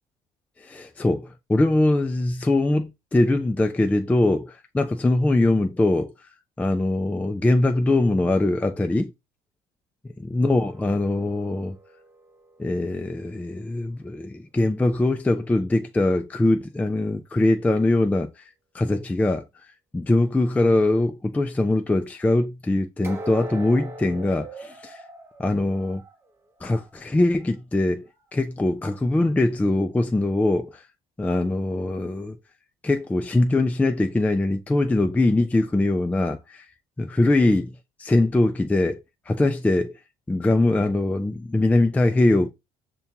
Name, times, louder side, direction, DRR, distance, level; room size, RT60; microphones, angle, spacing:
voice 1, 0.6-6.1 6.6-9.1 10.3-11.8 12.6-18.3 18.7-19.4 19.9-25.0 25.4-26.0 26.6-30.8 31.2-32.4 32.8-36.6 37.0-37.7 38.0-39.9 40.3-42.5, left 2 dB, 10° left, 0.4 m, -22 dB
sound 1, 10.6-13.7 23.0-26.9 27.3-27.5 28.1-28.2, right 1 dB, 15° right, 0.8 m, -42 dB
5.6 x 2.3 x 2.7 m
supercardioid pair, 70°, 15 cm